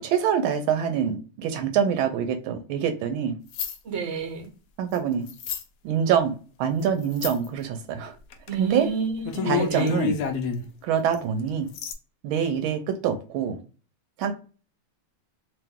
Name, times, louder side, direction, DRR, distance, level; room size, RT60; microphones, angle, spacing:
voice 1, 0.0-3.4 4.8-5.3 5.8-6.3 6.6-8.1 8.6-8.9 9.4-10.1 10.8-11.7 12.2-13.6 14.2-14.3, right 8 dB, 75° right, 1.3 m, -25 dB
sound 1, 3.5-3.8 5.3-5.6 7.1-7.5 8.3-8.5 8.8-8.9 9.2-10.6 11.1-11.2 11.7-11.9, left 6 dB, 80° left, 0.8 m, -28 dB
voice 2, 3.8-4.5 8.5-10.0, right 5 dB, 55° right, 0.7 m, -29 dB
3.0 x 2.9 x 3.5 m
omnidirectional pair, 2.4 m